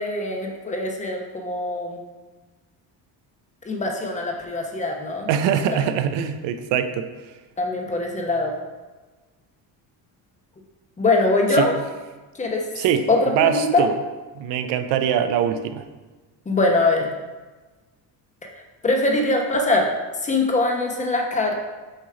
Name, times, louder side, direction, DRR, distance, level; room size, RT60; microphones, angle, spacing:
voice 1, 0.0-2.0 3.6-5.3 7.6-8.5 11.0-11.8 12.4-12.7 13.1-13.8 16.5-17.1 18.8-19.9 20.2-21.5, left 2 dB, 15° left, 1 dB, 0.9 m, -22 dB
voice 2, 5.3-7.1 11.5-11.7 12.7-13.9 14.3-15.9, right 8 dB, 80° right, 9 dB, 0.6 m, -23 dB
6.6 x 3.1 x 4.8 m, 1.2 s
cardioid pair, 120°, 43 cm